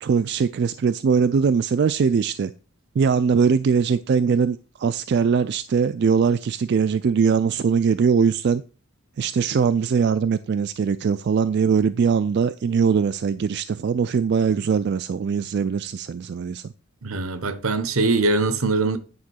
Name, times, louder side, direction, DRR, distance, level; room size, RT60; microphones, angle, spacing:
voice 1, 0.0-2.5 3.0-8.6 9.2-16.7, right 6 dB, 50° right, 0.3 m, -21 dB
voice 2, 17.0-19.0, right 3 dB, 75° right, 0.9 m, -22 dB
9.5 x 3.7 x 6.3 m
head